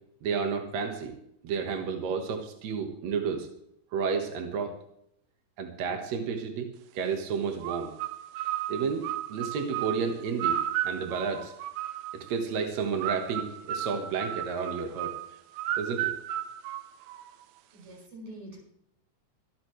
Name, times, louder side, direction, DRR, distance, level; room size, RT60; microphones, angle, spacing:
voice 1, 0.2-1.1 1.4-3.5 3.9-4.8 5.6-6.7 6.9-7.9 8.7-10.6 10.8-11.5 12.1-15.1 15.8-16.1, right 5 dB, 65° right, 4 dB, 1.7 m, -31 dB
sound 1, 7.6-12.3 13.0-17.5, right 11 dB, 90° right, 2.1 m, -34 dB
voice 2, 17.7-18.6, right 1 dB, 40° right, -3 dB, 6.8 m, -45 dB
23.5 x 9.4 x 3.2 m, 0.75 s
omnidirectional pair, 5.2 m